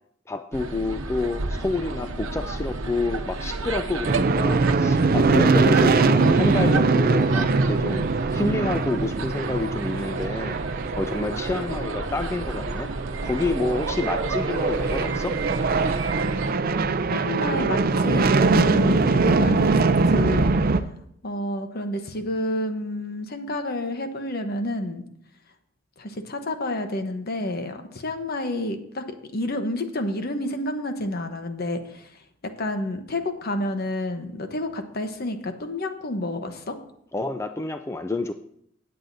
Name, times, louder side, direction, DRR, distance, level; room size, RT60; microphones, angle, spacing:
voice 1, 0.3-8.0 8.3-10.6 10.9-12.9 13.2-15.4 37.1-38.3, left 2 dB, 15° left, 8 dB, 0.4 m, -28 dB
sound 1, 0.5-16.5, right 3 dB, 80° right, 0.9 m, -33 dB
sound 2, 4.0-20.8, right 3 dB, 50° right, 0.5 m, -22 dB
voice 2, 17.1-19.7 20.1-20.5 21.2-25.0 26.0-32.1 32.4-36.8, left 1 dB, 50° left, 7 dB, 1.0 m, -29 dB
17.5 x 7.8 x 2.7 m, 0.71 s
head